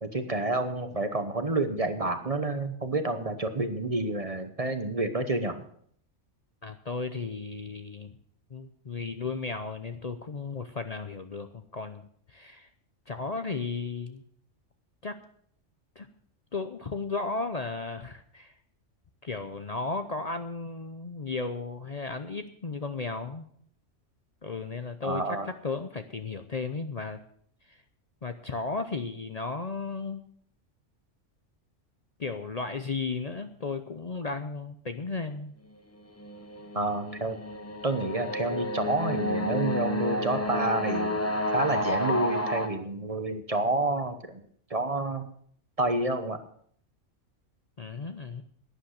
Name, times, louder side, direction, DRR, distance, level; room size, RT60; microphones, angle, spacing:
voice 1, 0.0-5.6 25.0-25.5 36.7-37.4 37.8-41.2 41.5-44.4 44.7-45.3 45.8-46.4, right 2 dB, 30° right, 8 dB, 1.0 m, -29 dB
voice 2, 6.6-8.2 8.5-12.7 13.1-14.2 15.0-15.2 16.0-16.1 16.5-18.5 19.2-23.5 24.4-27.2 27.7-27.8 28.2-30.3 32.2-35.5 47.8-48.4, left 4 dB, 40° left, 8 dB, 0.7 m, -35 dB
sound 1, 36.0-42.7, left 1 dB, 15° left, 1.0 m, -30 dB
11.5 x 10.5 x 6.5 m, 0.62 s
omnidirectional pair, 1.2 m